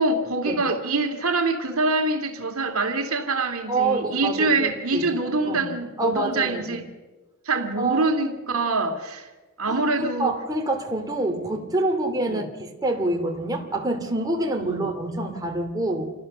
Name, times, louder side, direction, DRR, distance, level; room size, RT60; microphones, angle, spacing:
voice 1, 0.0-6.8 7.5-9.3 9.6-10.3 14.7-14.8, right 3 dB, 70° right, 5 dB, 2.4 m, -24 dB
voice 2, 3.7-5.1 5.4-5.7 6.0-6.8 7.8-8.1 9.7-16.1, right 2 dB, 15° right, 1 dB, 2.5 m, -26 dB
27.0 x 18.5 x 6.7 m, 1.3 s
head